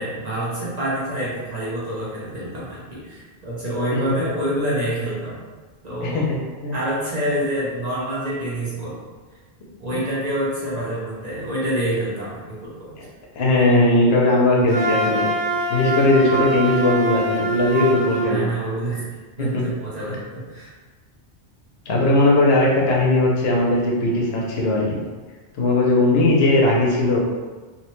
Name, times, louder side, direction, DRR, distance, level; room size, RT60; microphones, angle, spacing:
voice 1, 0.0-5.4 5.8-6.3 6.7-9.0 9.8-12.9 13.5-13.7 18.2-19.0 19.4-20.7, right 1 dB, 45° right, -8 dB, 0.7 m, -27 dB
voice 2, 6.0-6.7 13.0-13.1 13.4-15.3 15.7-18.5 19.4-19.6 21.9-25.0 25.5-27.2, left 2 dB, 70° left, -3 dB, 0.8 m, -18 dB
Wind instrument woodwind instrument, 14.7-18.4, right 2 dB, 10° right, 0.4 m, -24 dB
2.7 x 2.1 x 2.9 m, 1.3 s
omnidirectional pair, 1.1 m